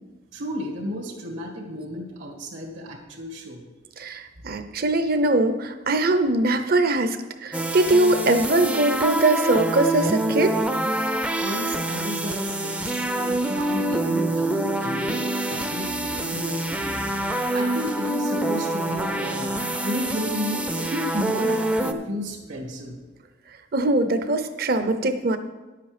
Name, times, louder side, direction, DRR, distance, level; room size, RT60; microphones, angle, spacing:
voice 1, 0.3-3.6 11.4-17.2 17.5-19.5 19.8-23.0, equal, 80° right, -1 dB, 2.0 m, -32 dB
voice 2, 4.0-10.5 23.7-25.4, right 2 dB, 50° right, 9 dB, 0.8 m, -22 dB
sound 1, 7.5-21.9, right 1 dB, 5° right, 0.5 m, -26 dB
10.5 x 8.3 x 5.1 m, 1.2 s
head